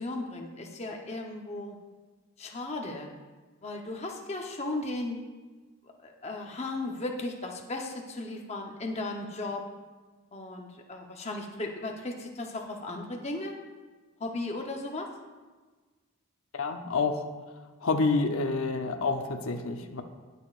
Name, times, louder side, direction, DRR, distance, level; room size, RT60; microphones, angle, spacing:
voice 1, 0.0-1.8 2.4-3.1 3.6-5.2 6.0-9.6 10.3-13.6 14.2-15.1, left 2 dB, 30° left, 1 dB, 0.9 m, -36 dB
voice 2, 16.5-17.3 17.8-20.0, left 3 dB, 80° left, 5 dB, 0.8 m, -28 dB
20.0 x 6.7 x 2.5 m, 1.3 s
head